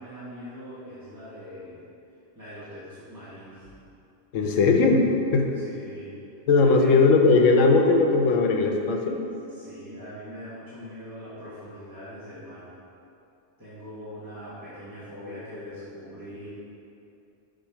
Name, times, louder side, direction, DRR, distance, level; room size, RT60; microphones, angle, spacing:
voice 1, 0.0-1.8 2.3-3.7 5.6-6.1 6.6-7.0 9.5-12.7 13.6-16.5, equal, 15° right, -14 dB, 1.5 m, -41 dB
voice 2, 4.3-5.1 5.3-5.5 6.5-9.2, left 3 dB, 85° left, 3 dB, 1.1 m, -19 dB
5.5 x 5.1 x 5.7 m, 2.7 s
omnidirectional pair, 1.3 m